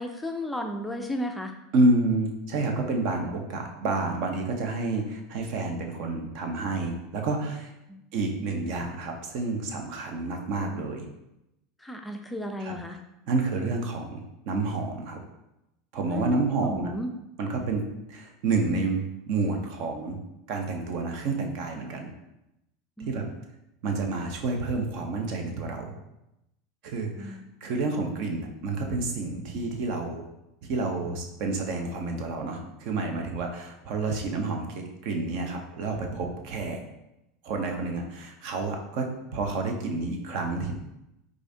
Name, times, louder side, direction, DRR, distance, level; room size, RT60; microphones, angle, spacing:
voice 1, 0.0-1.5 7.9-8.0 11.8-13.0 16.1-17.1 23.0-23.2 27.1-27.4, left 1 dB, 5° left, 3 dB, 0.4 m, -34 dB
voice 2, 1.7-7.7 8.1-11.1 12.6-12.7 13.3-15.2 15.9-16.9 17.4-20.2 20.5-22.1 23.1-23.2 23.8-25.9 26.8-30.3 30.7-36.8 37.4-40.7, right 3 dB, 60° right, 3 dB, 0.7 m, -29 dB
4.7 x 2.5 x 2.7 m, 0.88 s
supercardioid pair, 105°, 0 cm